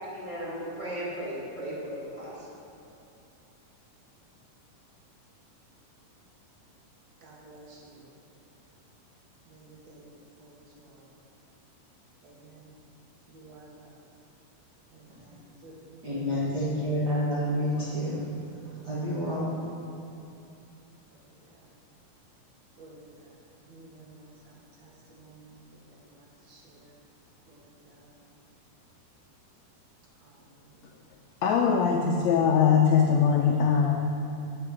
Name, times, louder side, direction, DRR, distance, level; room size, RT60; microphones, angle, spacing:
voice 1, 0.0-2.5, equal, 20° left, -8 dB, 1.6 m, -36 dB
voice 2, 7.2-8.1 9.5-11.1 12.2-12.7 13.3-14.0 14.9-16.8 18.7-19.1 19.6-19.7 21.1-21.6 22.8-23.4 23.7-26.9 27.5-28.2 30.2-30.9, right 2 dB, 60° right, -3 dB, 2.4 m, -54 dB
voice 3, 16.0-18.2 18.8-19.6, equal, 45° right, -8 dB, 1.5 m, -28 dB
voice 4, 31.4-34.0, left 6 dB, 80° left, 1 dB, 1.6 m, -22 dB
13.5 x 5.8 x 6.1 m, 2.8 s
omnidirectional pair, 3.8 m